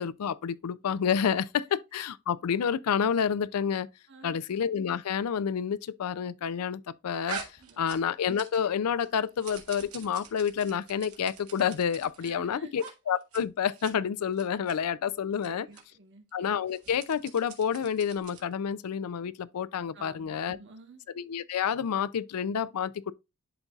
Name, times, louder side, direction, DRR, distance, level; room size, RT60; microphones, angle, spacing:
voice 1, 0.0-3.9 4.2-7.4 7.8-15.7 16.3-20.6 21.2-23.1, left 7 dB, 85° left, 0.4 m, -29 dB
voice 2, 4.1-4.4 7.6-7.9 12.2-12.7 15.4-16.2 19.9-21.0, right 3 dB, 55° right, 1.4 m, -51 dB
sound 1, 7.2-8.7 9.0-12.3 12.7-12.9 13.2-13.4 13.7-13.9 14.3-14.7 15.3-15.5 15.7-15.8 16.6-18.5, right 6 dB, 85° right, 1.6 m, -44 dB
11.0 x 4.0 x 2.3 m
head